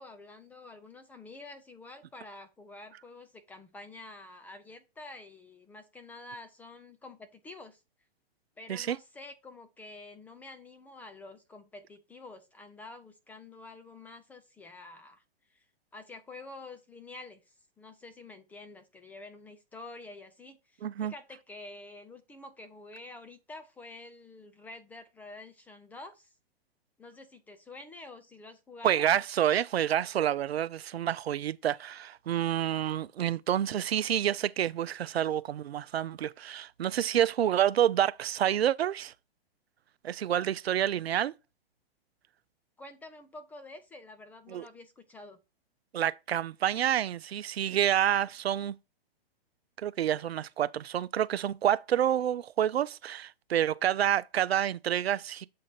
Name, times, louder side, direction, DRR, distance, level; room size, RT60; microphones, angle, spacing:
voice 1, 0.0-7.8 8.6-15.2 15.5-15.6 15.9-26.3 27.0-29.1 42.8-45.4, left 2 dB, 5° left, 0.3 m, -48 dB
voice 2, 20.8-21.1 28.8-39.1 40.0-41.3 44.5-44.7 45.9-48.8 49.8-55.5, right 10 dB, 85° right, 0.5 m, -28 dB
7.5 x 3.8 x 4.3 m
hypercardioid pair, 125°, 30 cm